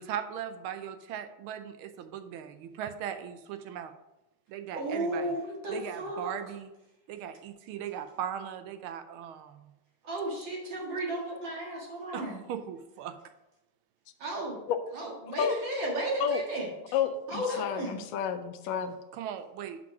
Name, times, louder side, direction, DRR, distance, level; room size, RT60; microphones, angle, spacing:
voice 1, 0.0-3.9 4.5-5.3 5.7-6.7 7.1-9.7 12.1-13.2 19.1-19.8, right 9 dB, 80° right, 9 dB, 1.4 m, -38 dB
voice 2, 4.7-6.4 10.0-12.4 14.2-14.6 14.9-16.9 17.3-18.0, right 1 dB, 60° right, -2 dB, 2.3 m, -34 dB
voice 3, 16.9-19.0, left 8 dB, 70° left, 7 dB, 1.3 m, -30 dB
5.5 x 5.4 x 5.8 m, 0.97 s
omnidirectional pair, 2.4 m